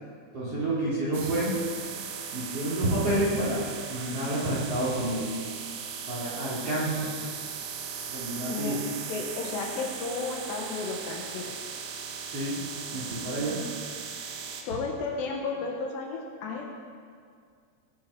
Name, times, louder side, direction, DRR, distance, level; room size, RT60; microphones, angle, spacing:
voice 1, 0.3-1.6 2.3-3.6 3.9-5.3 6.1-7.1 8.1-8.8 12.3-12.6 12.9-13.6, right 1 dB, 40° right, -8 dB, 2.8 m, -29 dB
sound 1, 1.1-14.6, right 6 dB, 80° right, 3.5 m, -38 dB
voice 2, 9.1-11.5 14.7-16.7, left 4 dB, 75° left, 1 dB, 2.9 m, -33 dB
20.0 x 7.5 x 5.5 m, 2.2 s
omnidirectional pair, 5.6 m